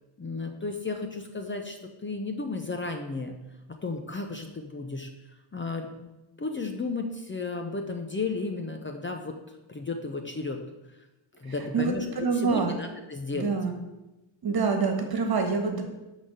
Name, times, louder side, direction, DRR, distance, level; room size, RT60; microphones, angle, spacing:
voice 1, 0.2-1.8 2.0-3.4 3.7-5.1 5.5-6.1 6.4-9.4 9.7-10.6 11.4-13.5, left 3 dB, 25° left, 4 dB, 0.8 m, -33 dB
voice 2, 11.7-12.8 13.3-13.7 14.4-15.8, right 5 dB, 45° right, 5 dB, 1.7 m, -26 dB
11.5 x 4.2 x 7.7 m, 1.0 s
wide cardioid pair, 160°, 50 cm